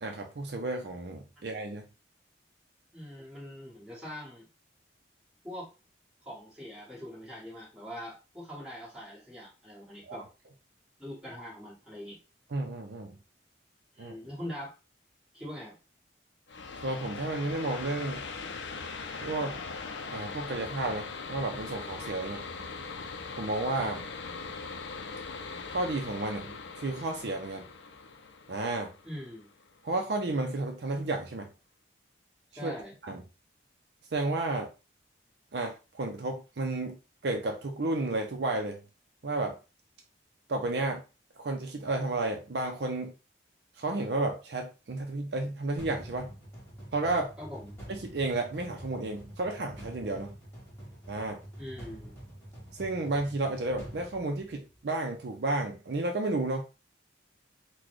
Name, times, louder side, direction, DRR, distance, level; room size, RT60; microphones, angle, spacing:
voice 1, 0.0-1.8 10.1-10.2 12.5-13.2 14.0-14.1 16.8-18.2 19.2-19.6 20.1-22.4 23.4-24.0 25.7-27.6 28.5-28.9 29.8-31.5 32.6-32.7 33.0-33.2 34.1-34.7 35.5-37.0 37.2-38.8 39.2-39.6 40.5-41.0 41.4-43.1 43.8-46.3 46.9-47.3 47.9-50.3 51.1-51.4 52.7-56.6, right 2 dB, 60° right, 3 dB, 0.5 m, -32 dB
voice 2, 2.9-4.5 5.4-5.7 6.2-10.3 11.0-12.2 13.9-14.7 15.3-15.8 29.0-29.5 32.5-32.9 47.4-47.8 51.6-52.2, equal, 5° right, -6 dB, 1.5 m, -42 dB
sound 1, 16.5-29.9, left 4 dB, 70° left, 0.5 m, -41 dB
sound 2, 45.8-55.0, equal, 15° left, 1.2 m, -47 dB
4.0 x 2.2 x 3.0 m, 0.30 s
head